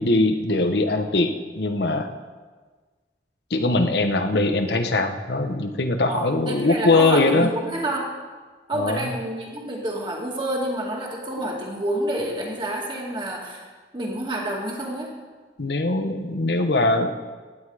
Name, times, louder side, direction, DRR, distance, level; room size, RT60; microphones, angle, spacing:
voice 1, 0.0-2.1 3.5-7.5 8.7-9.1 15.6-17.1, left 2 dB, 70° left, 6 dB, 1.0 m, -21 dB
voice 2, 6.1-8.1 8.7-13.7 13.9-15.1, right 1 dB, 25° right, -1 dB, 2.3 m, -28 dB
16.0 x 9.9 x 4.9 m, 1.4 s
head